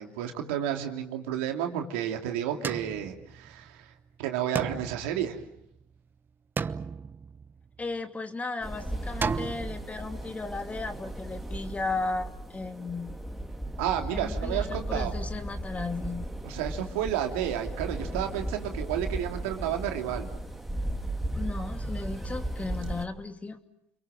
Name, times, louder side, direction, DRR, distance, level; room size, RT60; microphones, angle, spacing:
voice 1, 0.0-3.9 4.2-5.4 13.8-15.1 16.4-20.3, right 10 dB, 80° right, 4 dB, 2.9 m, -31 dB
sound 1, 2.6-3.8 4.6-6.0 6.6-7.9 9.2-9.8, right 5 dB, 30° right, 1.1 m, -34 dB
voice 2, 7.8-13.2 14.1-16.3 21.4-23.6, left 3 dB, 20° left, 7 dB, 2.7 m, -35 dB
sound 2, 8.6-23.0, right 1 dB, 5° right, 3.0 m, -36 dB
30.0 x 22.5 x 7.6 m, 0.78 s
hypercardioid pair, 70°, 6 cm